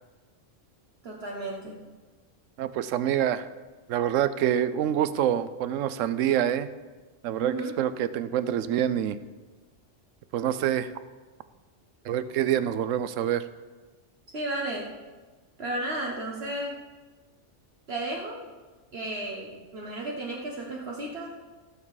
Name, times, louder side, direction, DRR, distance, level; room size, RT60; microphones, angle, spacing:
voice 1, 1.0-1.8 7.4-7.7 14.3-14.9 15.6-16.8 17.9-18.4 18.9-21.3, right 2 dB, 55° right, -2 dB, 1.4 m, -33 dB
voice 2, 2.6-3.5 3.9-6.7 7.2-9.2 10.3-10.9 12.0-13.4, right 10 dB, 80° right, 14 dB, 1.0 m, -26 dB
15.5 x 7.3 x 4.8 m, 1.3 s
omnidirectional pair, 1.3 m